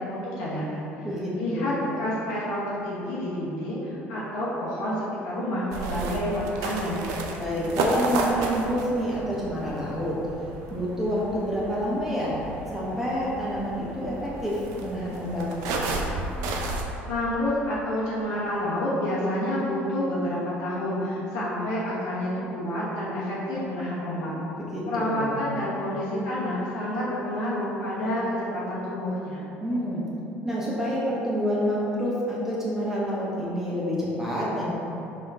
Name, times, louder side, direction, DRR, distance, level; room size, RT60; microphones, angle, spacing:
voice 1, 0.0-1.1 1.4-7.1 17.1-24.3 24.9-29.4, left 1 dB, 75° left, -8 dB, 0.9 m, -29 dB
voice 2, 1.0-1.7 7.4-10.2 10.7-12.4 12.7-15.5 24.6-25.4 29.6-30.0 30.4-34.7, equal, 5° right, -7 dB, 1.0 m, -28 dB
sound 1, 5.7-16.8, right 2 dB, 70° right, 0.5 m, -32 dB
3.4 x 2.9 x 4.4 m, 3.0 s
hypercardioid pair, 70°, 6 cm